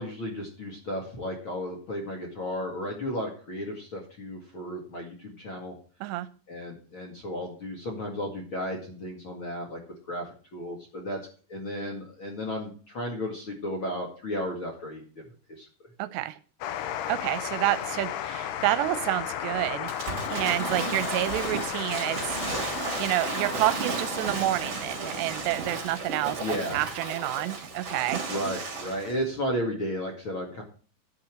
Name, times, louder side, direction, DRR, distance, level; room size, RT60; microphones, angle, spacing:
voice 1, 0.0-5.7 6.5-9.8 10.1-10.3 10.5-11.2 11.5-15.2 15.6-15.7 26.4-26.8 28.3-30.6, equal, 40° left, 0 dB, 1.9 m, -34 dB
voice 2, 16.0-16.4 17.1-22.6 23.0-28.3, right 15 dB, 85° right, 15 dB, 2.8 m, -29 dB
sound 1, 16.6-29.6, left 10 dB, 75° left, 2.8 m, -35 dB
Waves surf / Splash splatter, 19.9-29.1, right 4 dB, 40° right, 3.4 m, -34 dB
sound 2, 22.1-23.2, left 1 dB, 60° left, 5.4 m, -47 dB
11.0 x 6.0 x 7.5 m, 0.39 s
omnidirectional pair, 5.0 m